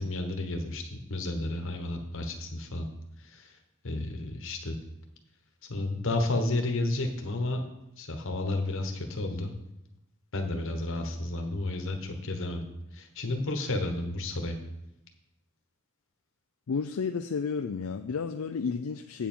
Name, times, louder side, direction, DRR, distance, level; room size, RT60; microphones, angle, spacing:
voice 1, 0.0-2.9 3.2-3.6 3.8-4.8 5.7-7.6 8.0-9.5 10.3-12.6 12.9-14.6, left 2 dB, 65° left, 5 dB, 1.2 m, -32 dB
voice 2, 16.7-19.3, left 5 dB, 80° left, 7 dB, 0.4 m, -32 dB
8.5 x 7.3 x 4.4 m, 0.88 s
head